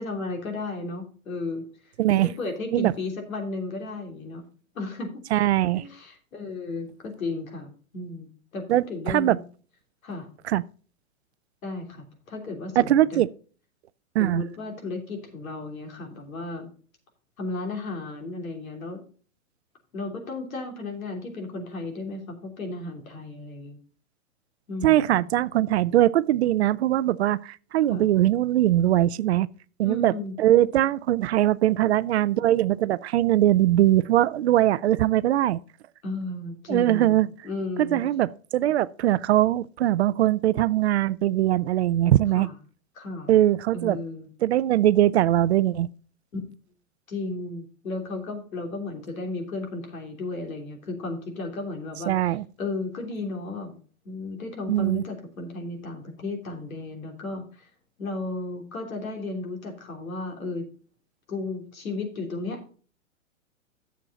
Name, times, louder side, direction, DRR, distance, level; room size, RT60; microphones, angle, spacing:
voice 1, 0.0-4.4 4.7-5.2 5.7-8.3 8.5-9.4 10.0-10.3 11.6-13.2 14.2-16.7 17.4-19.0 19.9-23.8 24.7-25.2 27.9-28.1 29.8-30.3 36.0-38.0 42.3-42.5 42.9-43.3 43.7-44.3 46.3-46.4 47.1-53.8 54.0-57.7 58.0-60.6 61.3-62.6, left 2 dB, 80° left, 3.2 m, -34 dB
voice 2, 2.0-2.3 2.7-2.9 5.3-5.9 8.7-9.4 10.5-10.6 12.8-13.3 14.2-14.4 24.8-29.5 29.8-35.6 36.7-37.3 37.8-42.5 43.3-44.0 44.4-45.9 52.1-52.4 54.7-55.0, right 13 dB, 55° right, 0.5 m, -21 dB
9.7 x 7.2 x 4.1 m
hypercardioid pair, 140°, 41 cm